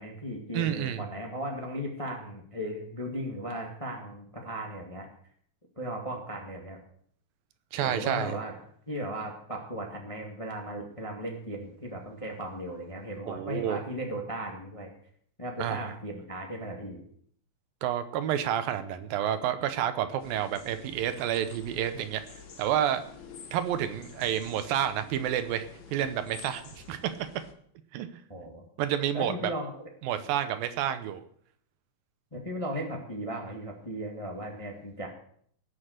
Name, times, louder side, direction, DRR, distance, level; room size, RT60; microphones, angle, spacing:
voice 1, 0.0-5.1 5.7-6.8 7.8-8.6 8.9-14.9 15.4-17.0 28.3-28.6 29.1-29.9 32.3-35.1, equal, 15° left, 0 dB, 1.3 m, -36 dB
voice 2, 0.5-1.0 7.7-8.4 13.3-13.8 15.6-15.9 17.8-23.0 23.5-25.7 25.9-27.2 27.9-28.1 28.8-29.5 30.0-31.2, right 10 dB, 80° right, 10 dB, 2.7 m, -29 dB
sound 1, 20.2-27.5, left 6 dB, 75° left, 1.0 m, -49 dB
18.5 x 6.7 x 6.5 m, 0.62 s
omnidirectional pair, 4.1 m